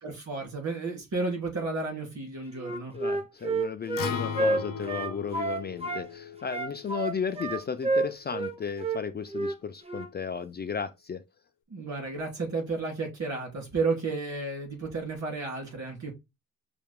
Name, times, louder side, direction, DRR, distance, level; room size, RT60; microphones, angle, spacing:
voice 1, 0.0-3.0 11.7-16.1, right 3 dB, 60° right, 3.0 m, -32 dB
Wind instrument woodwind instrument, 2.6-6.0 6.5-8.5 8.8-9.0 9.3-9.6 9.9-10.1, right 3 dB, 20° right, 0.6 m, -29 dB
voice 2, 2.9-11.2, left 6 dB, 35° left, 0.4 m, -34 dB
Acoustic guitar, 4.0-8.2, left 6 dB, 85° left, 0.7 m, -38 dB
5.7 x 2.3 x 3.5 m
cardioid pair, 110°, 32 cm